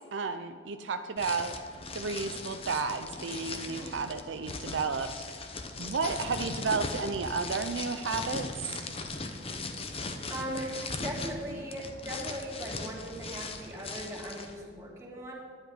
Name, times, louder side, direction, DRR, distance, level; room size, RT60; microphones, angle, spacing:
voice 1, 0.1-1.5 1.9-5.1 5.8-8.5, right 4 dB, 75° right, 8 dB, 0.5 m, -32 dB
sound 1, 1.2-14.5, left 3 dB, 30° left, 0.9 m, -39 dB
voice 2, 10.3-15.3, equal, 15° right, -4 dB, 2.6 m, -39 dB
11.5 x 9.9 x 5.1 m, 2.1 s
head